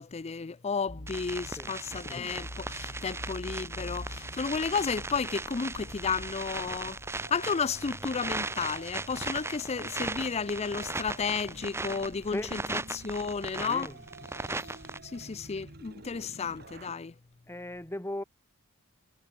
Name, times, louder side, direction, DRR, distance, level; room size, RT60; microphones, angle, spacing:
voice 1, 0.0-13.9 15.0-17.1, left 5 dB, 30° left, 0.5 m, -33 dB
sound 1, 0.9-6.3, left 1 dB, 65° left, 3.7 m, -45 dB
sound 2, 1.1-15.0, right 3 dB, 10° right, 1.0 m, -38 dB
sound 3, 4.4-16.9, right 2 dB, 45° right, 2.4 m, -50 dB
voice 2, 13.6-14.0 17.5-18.2, left 1 dB, 10° left, 1.5 m, -37 dB
head